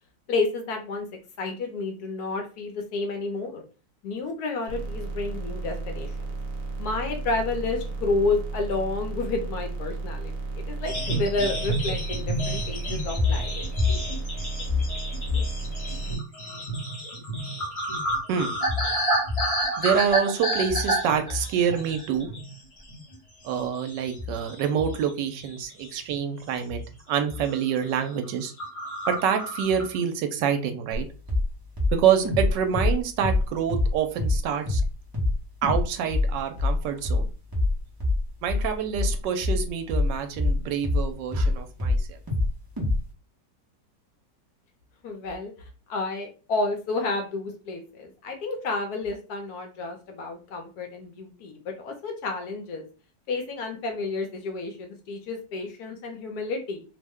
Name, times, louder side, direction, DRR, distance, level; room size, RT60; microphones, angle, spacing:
voice 1, 0.3-1.1 1.4-3.6 4.0-6.4 6.8-10.3 10.7-13.5 45.0-52.9 53.3-56.8, left 3 dB, 70° left, 4 dB, 1.0 m, -30 dB
sound 1, 4.7-16.1, right 3 dB, 65° right, 0.9 m, -34 dB
sound 2, 10.9-22.6 22.9-23.2 23.6-25.1 25.4-26.2 26.7-26.9 27.2-27.6 27.9-28.0 28.2-28.3 28.6-30.0, equal, 30° left, 0.6 m, -29 dB
voice 2, 19.8-22.3 23.4-26.8 27.1-28.5 29.1-31.1 31.9-34.8 35.6-37.2 38.4-42.2, right 8 dB, 80° right, 7 dB, 1.2 m, -26 dB
sound 3, 30.9-31.0 31.3-31.5 31.8-33.9 34.2-34.4 34.7-34.9 35.1-35.4 35.6-35.8 36.1-41.5 41.8-42.5 42.8-43.0, left 2 dB, 25° right, 0.5 m, -24 dB
3.0 x 2.1 x 3.5 m, 0.35 s
omnidirectional pair, 1.9 m